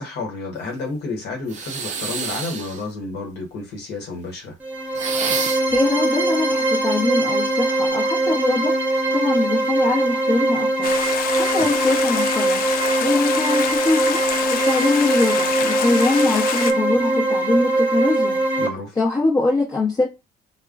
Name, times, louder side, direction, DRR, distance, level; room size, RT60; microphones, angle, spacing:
voice 1, 0.0-4.6 11.6-11.7 18.6-18.9, left 3 dB, 75° left, 1.0 m, -30 dB
sound 1, 1.5-2.9 4.9-5.8, right 5 dB, 45° right, 0.5 m, -28 dB
sound 2, 4.6-18.7, right 2 dB, 10° right, 0.8 m, -21 dB
voice 2, 5.7-8.7 9.1-10.9 11.3-12.6 13.0-14.2 14.5-18.4 18.9-20.1, left 2 dB, 25° left, 0.8 m, -22 dB
Stream, 10.8-16.7, left 9 dB, 60° left, 0.4 m, -27 dB
3.6 x 2.2 x 2.4 m
cardioid pair, 110°, 17 cm